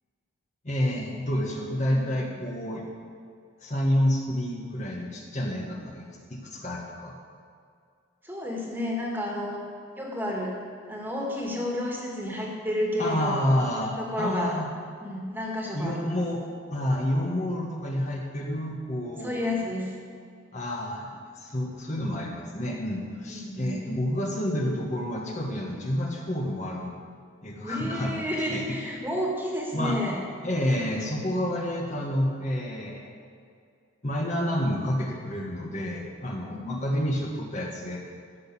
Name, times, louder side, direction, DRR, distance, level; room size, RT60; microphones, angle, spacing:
voice 1, 0.6-2.8 3.6-6.0 6.3-7.1 13.0-14.7 15.7-16.4 16.7-19.4 20.5-21.1 21.3-26.9 27.4-28.1 28.5-28.8 29.7-30.0 30.4-33.1 34.0-38.0, left 1 dB, 35° left, -1 dB, 1.5 m, -29 dB
voice 2, 1.9-2.3 8.2-9.6 10.0-10.6 10.9-13.5 14.0-14.5 15.0-16.2 19.2-19.9 23.3-23.8 27.6-30.2 36.5-37.4, left 1 dB, 10° right, -2 dB, 2.0 m, -31 dB
14.5 x 6.5 x 8.5 m, 2.3 s
head